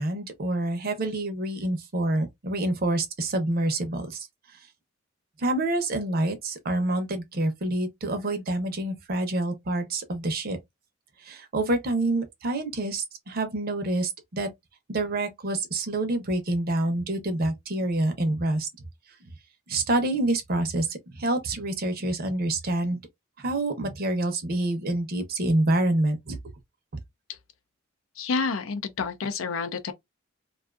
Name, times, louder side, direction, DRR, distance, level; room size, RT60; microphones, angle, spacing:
voice 1, 0.0-4.3 5.4-10.6 11.2-14.5 14.9-18.7 19.7-23.0 23.4-26.4, right 2 dB, 50° right, 0.6 m, -27 dB
voice 2, 28.2-29.9, left 4 dB, 75° left, 0.5 m, -29 dB
2.5 x 2.3 x 2.3 m
head